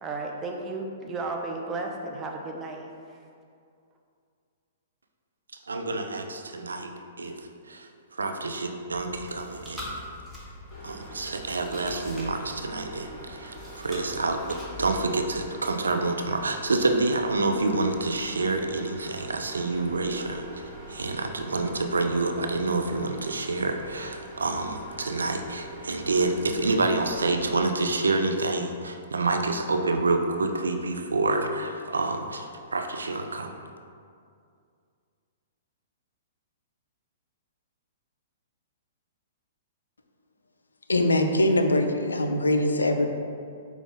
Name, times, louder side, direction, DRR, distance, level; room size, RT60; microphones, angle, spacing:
voice 1, 0.0-2.9, right 3 dB, 20° right, 1 dB, 0.5 m, -33 dB
voice 2, 5.7-6.9 7.2-7.4 7.7-7.9 8.2-10.0 10.8-20.4 20.9-33.5, right 3 dB, 80° right, 5 dB, 0.3 m, -28 dB
Chewing mastication, 8.9-15.5, left 1 dB, 5° right, 1.0 m, -43 dB
sound 1, 10.7-27.6, right 2 dB, 35° left, 0.9 m, -44 dB
voice 3, 40.9-43.1, left 1 dB, 80° left, 5 dB, 0.3 m, -22 dB
5.2 x 2.3 x 3.9 m, 2.3 s
figure-of-eight pair, 115°, 0 cm